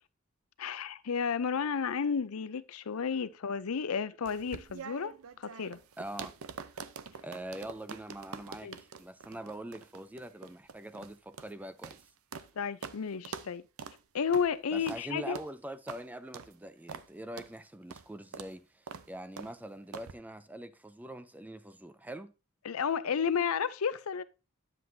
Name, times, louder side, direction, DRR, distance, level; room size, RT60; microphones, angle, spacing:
voice 1, 0.6-5.8 8.6-8.8 12.6-13.6 14.1-15.4 22.6-24.2, left 6 dB, 90° left, 0.6 m, -32 dB
sound 1, 4.2-12.5 12.8-13.0 13.2-13.5 13.8-14.0 14.3-14.5 14.9-15.0 15.3-15.5 15.9-16.0 16.3-16.5 16.9-17.1 17.4-17.5 17.9-18.1 18.3-18.5 18.9-19.1 19.4-19.5 19.9-20.1, right 6 dB, 85° right, 0.6 m, -45 dB
voice 2, 6.0-6.3 7.2-12.0 14.7-22.3, right 1 dB, 10° right, 0.4 m, -43 dB
9.6 x 7.5 x 2.7 m
head